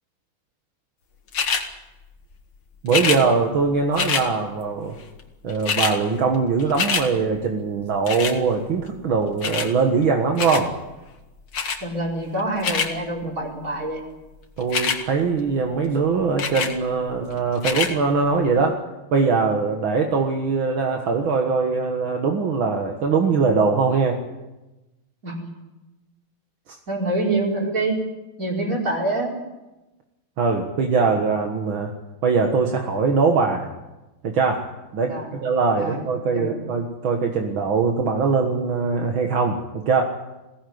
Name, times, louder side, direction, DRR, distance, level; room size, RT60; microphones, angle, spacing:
sound 1, 1.3-1.7 2.9-3.2 3.9-4.3 5.2-5.3 5.5-6.0 6.3-7.1 8.1-8.4 9.4-9.7 10.4-10.7 11.5-11.8 12.4-12.9 14.6-15.0 16.4-16.7 17.6-17.9 18.6-18.7, left 6 dB, 85° left, 2.7 m, -24 dB
voice 1, 2.8-5.0 5.4-10.7 14.6-18.8 19.1-24.2 30.4-31.9 32.2-33.7 34.2-34.7 34.9-40.0, right 4 dB, 70° right, 2 dB, 2.4 m, -22 dB
voice 2, 11.8-14.0 25.2-25.4 26.9-28.0 28.4-29.4 35.0-35.3 35.7-36.0 36.3-36.6, right 2 dB, 40° right, -1 dB, 5.4 m, -26 dB
21.5 x 17.0 x 9.6 m, 1.1 s
omnidirectional pair, 2.3 m